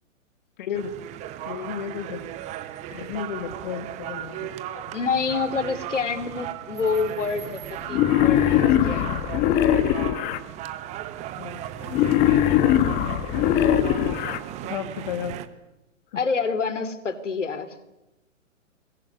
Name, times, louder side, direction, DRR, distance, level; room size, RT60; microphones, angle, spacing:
voice 1, 0.6-0.9 1.5-2.3 2.9-4.5 11.4-11.6 14.6-15.4 16.1-16.2, left 8 dB, 40° left, 9 dB, 1.9 m, -33 dB
sound 1, 0.7-15.5, right 12 dB, 15° right, 1.2 m, -36 dB
voice 2, 4.7-9.3 16.1-17.7, left 5 dB, 65° left, 11 dB, 3.3 m, -28 dB
Wild animals, 7.9-10.4 11.9-14.4, left 11 dB, 20° left, 1.3 m, -21 dB
24.5 x 22.5 x 9.6 m, 0.95 s
figure-of-eight pair, 120°, 39 cm